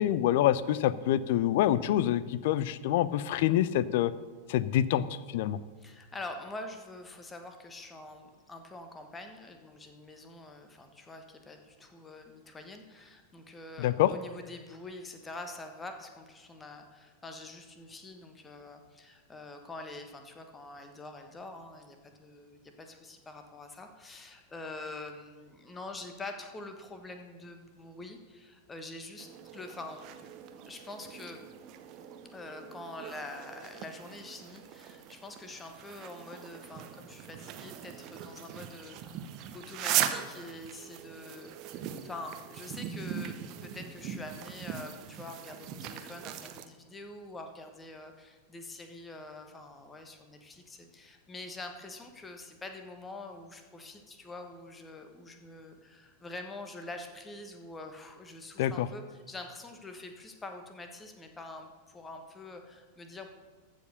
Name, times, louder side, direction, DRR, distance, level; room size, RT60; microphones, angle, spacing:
voice 1, 0.0-4.1 4.5-5.6 13.8-14.1 58.6-58.9, left 12 dB, 50° left, 17 dB, 0.4 m, -26 dB
voice 2, 5.8-30.2 30.7-31.5 32.3-39.3 39.5-63.3, left 2 dB, 15° left, 5 dB, 1.3 m, -45 dB
sound 1, 29.2-46.6, right 10 dB, 40° right, 0.8 m, -39 dB
14.5 x 5.1 x 6.6 m, 1.4 s
figure-of-eight pair, 90°, 0 cm